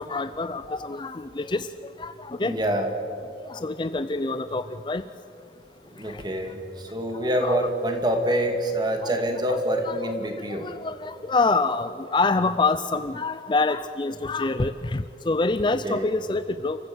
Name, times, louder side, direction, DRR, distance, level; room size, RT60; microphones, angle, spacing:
voice 1, 0.0-1.7 2.0-2.1 2.4-2.5 3.5-5.0 7.4-7.6 9.5-9.6 9.8-10.0 10.6-16.8, left 3 dB, 25° left, 12 dB, 0.5 m, -26 dB
voice 2, 2.4-2.9 5.8-10.7 15.6-16.1, right 1 dB, 25° right, 4 dB, 2.4 m, -26 dB
29.5 x 14.5 x 7.9 m, 2.6 s
head